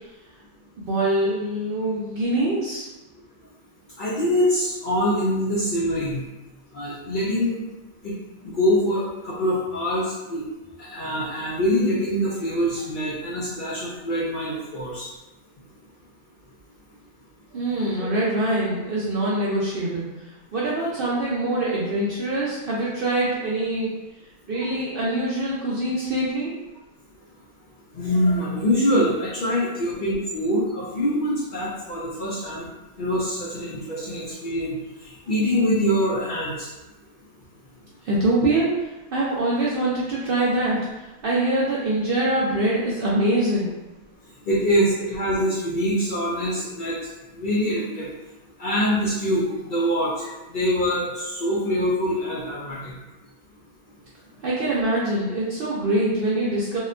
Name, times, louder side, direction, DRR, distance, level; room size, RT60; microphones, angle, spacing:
voice 1, 0.8-2.9 17.5-23.9 24.5-26.6 38.0-43.7 54.4-56.8, right 1 dB, 65° right, -7 dB, 0.5 m, -24 dB
voice 2, 4.0-6.2 6.7-7.6 8.0-8.2 8.4-10.4 10.8-15.1 27.9-32.7 33.0-34.8 35.3-36.7 44.5-47.0 47.3-48.1 48.6-52.9, equal, 60° left, -7 dB, 0.5 m, -24 dB
2.8 x 2.1 x 2.4 m, 1.0 s
omnidirectional pair, 1.4 m